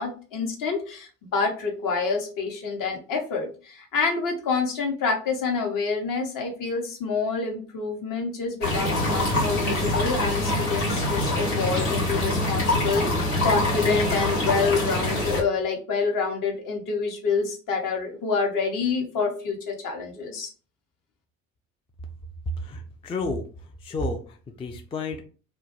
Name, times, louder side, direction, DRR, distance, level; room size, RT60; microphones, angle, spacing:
voice 1, 0.0-20.5, left 4 dB, 55° left, 2 dB, 0.9 m, -27 dB
sound 1, 8.6-15.4, left 1 dB, 85° left, 0.8 m, -25 dB
voice 2, 22.6-23.4 23.8-25.2, left 2 dB, 15° left, 4 dB, 0.3 m, -31 dB
2.2 x 2.1 x 2.9 m, 0.38 s
hypercardioid pair, 45°, 40 cm